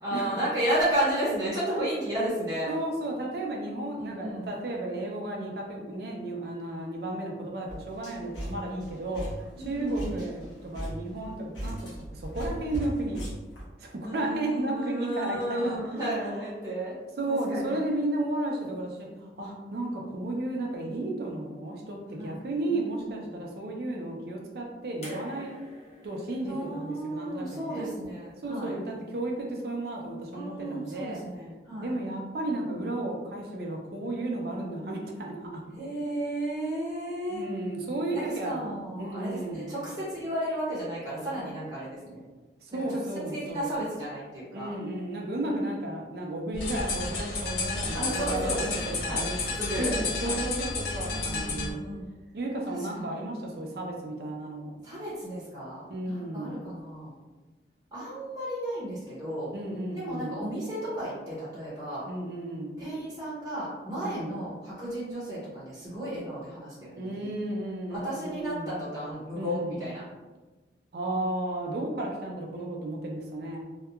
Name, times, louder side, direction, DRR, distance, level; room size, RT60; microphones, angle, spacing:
voice 1, 0.0-2.7 4.0-4.5 9.5-10.2 14.0-16.9 17.3-17.8 22.2-22.4 22.7-23.4 26.5-28.8 30.3-31.9 35.7-37.4 38.1-42.2 42.9-43.0 43.3-44.7 47.9-49.9 50.2-50.5 51.1-52.1 52.9-53.0 54.8-57.2 57.9-59.5 59.9-62.0 62.8-67.3 67.9-70.0, right 1 dB, 20° right, -9 dB, 0.7 m, -33 dB
voice 2, 2.7-13.3 13.8-15.8 17.2-25.6 26.0-28.0 28.4-31.2 31.8-35.6 37.3-39.8 42.6-43.8 44.5-49.4 49.8-51.8 52.3-54.7 55.9-56.6 59.5-60.4 62.1-62.8 63.9-64.4 67.0-68.7 69.3-69.8 70.9-73.6, right 1 dB, 60° right, 0 dB, 0.4 m, -33 dB
sound 1, 7.7-13.6, right 1 dB, 80° left, 1.0 m, -38 dB
sound 2, 25.0-28.2 29.4-29.5, left 1 dB, 35° left, 0.8 m, -48 dB
sound 3, 46.5-51.7, left 3 dB, 65° left, 0.7 m, -31 dB
2.7 x 2.2 x 2.3 m, 1.2 s
head